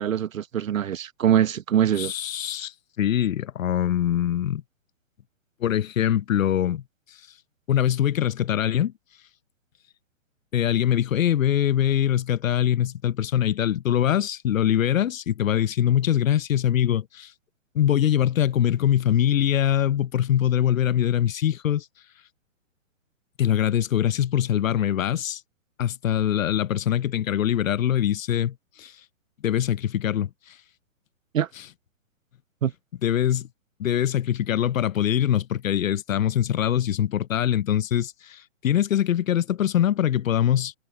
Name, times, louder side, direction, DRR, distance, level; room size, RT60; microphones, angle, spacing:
voice 1, 0.0-2.1 31.3-31.5 32.6-32.7, right 9 dB, 75° right, 1.0 m, -23 dB
voice 2, 2.0-4.6 5.6-6.8 7.7-8.9 10.5-17.3 17.7-21.9 23.4-25.4 25.8-28.9 29.4-30.6 33.0-33.5 33.8-40.7, left 10 dB, 80° left, 0.7 m, -23 dB
hypercardioid pair, 140°, 40 cm